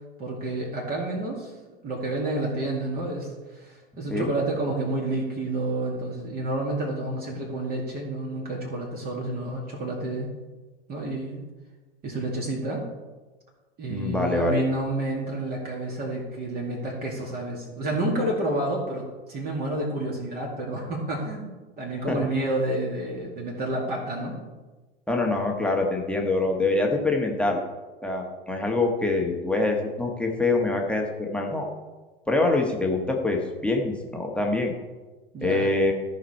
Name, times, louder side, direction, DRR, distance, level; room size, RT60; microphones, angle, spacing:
voice 1, 0.2-1.5 1.8-10.3 10.9-11.4 12.0-12.8 13.8-24.4 35.3-35.7, right 2 dB, 30° right, -3 dB, 2.3 m, -29 dB
voice 2, 13.9-14.6 22.1-22.2 25.1-27.6 28.0-31.7 32.3-34.7 35.4-35.9, left 2 dB, 5° left, 0 dB, 1.4 m, -25 dB
14.0 x 5.3 x 4.4 m, 1.2 s
figure-of-eight pair, 90°, 32 cm